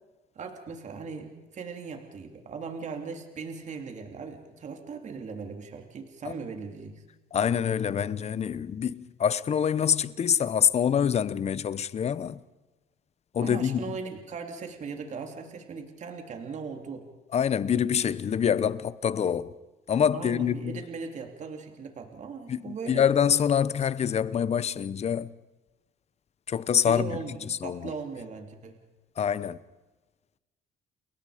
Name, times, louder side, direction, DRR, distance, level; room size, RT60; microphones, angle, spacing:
voice 1, 0.3-7.0 13.4-17.1 20.1-23.0 26.8-28.8, right 5 dB, 45° right, 3.2 m, -38 dB
voice 2, 7.3-12.4 13.3-14.0 17.3-19.5 19.9-20.8 22.5-25.3 26.5-27.9 29.2-29.6, left 8 dB, 40° left, 0.9 m, -26 dB
30.0 x 22.5 x 5.1 m
cardioid pair, 110°, 17 cm